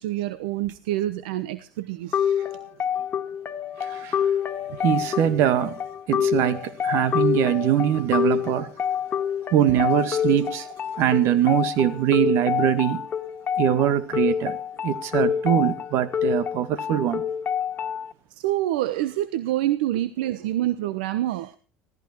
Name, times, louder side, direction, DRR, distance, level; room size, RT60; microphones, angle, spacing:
voice 1, 0.0-2.6 4.7-4.8 18.4-21.5, right 14 dB, 85° right, 14 dB, 1.0 m, -27 dB
sound 1, 2.1-18.1, left 8 dB, 35° left, 2.2 m, -27 dB
voice 2, 3.8-4.2 4.8-5.8 6.1-8.7 9.5-10.7 11.0-13.0 13.6-14.6 14.8-17.2, right 11 dB, 65° right, 13 dB, 2.1 m, -22 dB
17.0 x 14.5 x 4.5 m, 0.35 s
supercardioid pair, 95°, 5 cm